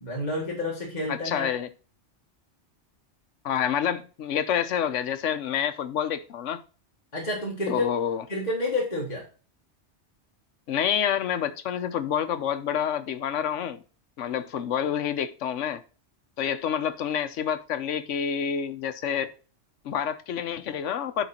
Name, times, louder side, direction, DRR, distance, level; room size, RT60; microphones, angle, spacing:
voice 1, 0.0-1.5 7.1-7.8 8.3-9.3, left 1 dB, 35° left, 1.9 m, -29 dB
voice 2, 1.1-1.7 3.4-6.6 7.7-8.2 10.7-13.8 14.2-15.8 16.4-19.3 19.8-21.3, left 8 dB, 90° left, 1.1 m, -28 dB
10.0 x 3.8 x 4.2 m
omnidirectional pair, 1.2 m